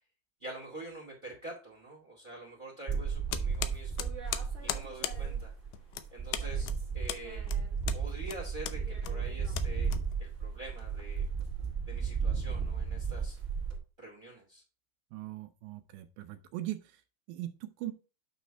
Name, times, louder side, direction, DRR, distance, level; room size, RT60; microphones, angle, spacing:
voice 1, 0.4-4.1 4.6-5.5 6.1-6.7 6.9-7.4 7.9-9.9 10.2-11.3 11.8-13.4 14.0-14.6, right 2 dB, 25° right, 0 dB, 1.2 m, -46 dB
sound 1, 2.9-5.7 6.0-13.8, right 6 dB, 45° right, 0.9 m, -34 dB
sound 2, 3.3-10.5, left 13 dB, 85° left, 2.7 m, -39 dB
voice 2, 15.1-17.0 17.3-17.9, right 15 dB, 80° right, 9 dB, 2.2 m, -40 dB
9.0 x 3.1 x 5.6 m, 0.34 s
omnidirectional pair, 4.6 m